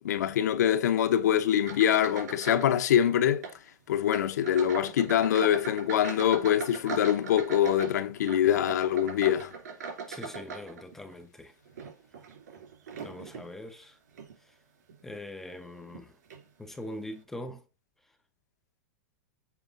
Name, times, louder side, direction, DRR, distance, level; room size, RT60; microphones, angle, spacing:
voice 1, 0.0-3.4 3.9-9.5, left 10 dB, 75° left, 1.0 m, -24 dB
sound 1, 1.6-2.8 3.0-3.6 4.1-11.1 11.7-13.5 14.1-14.3 14.9-15.0 15.9-16.0 16.3-16.5, right 5 dB, 75° right, 3.3 m, -40 dB
voice 2, 10.1-11.5 13.0-14.0 15.0-16.1 16.6-17.6, left 1 dB, 5° left, 0.4 m, -42 dB
7.3 x 4.6 x 3.9 m
supercardioid pair, 175°, 9 cm